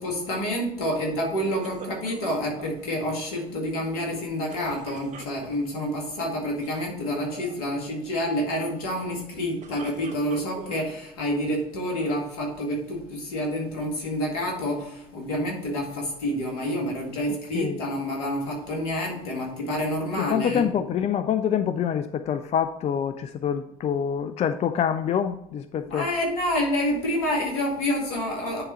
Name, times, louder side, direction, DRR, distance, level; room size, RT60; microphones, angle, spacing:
voice 1, 0.0-20.7 25.9-28.6, equal, 70° left, 2.0 m, -28 dB
sound 1, 1.6-2.8 4.5-5.8 6.5-6.9 7.1-7.5 9.4-10.9 11.5-12.2, right 6 dB, 40° right, 0.9 m, -44 dB
voice 2, 20.2-26.1, left 8 dB, 35° left, 0.4 m, -26 dB
9.9 x 3.6 x 4.2 m
figure-of-eight pair, 60°, 20 cm